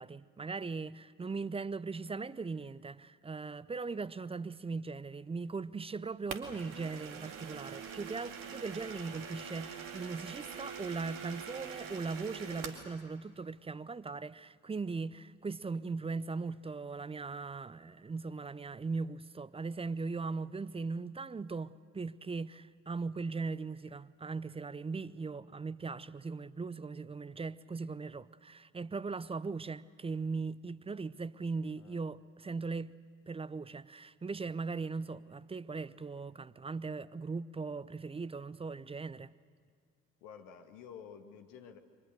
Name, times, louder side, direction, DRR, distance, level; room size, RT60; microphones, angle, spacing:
voice 1, 0.0-32.9 33.3-39.3, right 4 dB, 15° right, 0.6 m, -39 dB
sound 1, 6.3-12.9, right 6 dB, 55° right, 2.4 m, -44 dB
voice 2, 40.2-41.8, left 7 dB, 65° left, 1.9 m, -51 dB
29.0 x 24.0 x 6.7 m
figure-of-eight pair, 50°, 38 cm